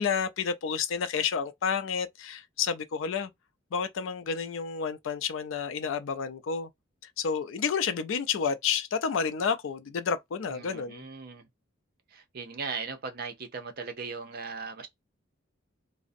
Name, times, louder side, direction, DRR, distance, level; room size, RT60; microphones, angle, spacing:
voice 1, 0.0-3.3 3.7-6.7 7.2-11.0, left 6 dB, 75° left, 0.4 m, -30 dB
voice 2, 10.5-11.5 12.1-14.9, right 5 dB, 50° right, 0.6 m, -38 dB
2.4 x 2.0 x 2.5 m
head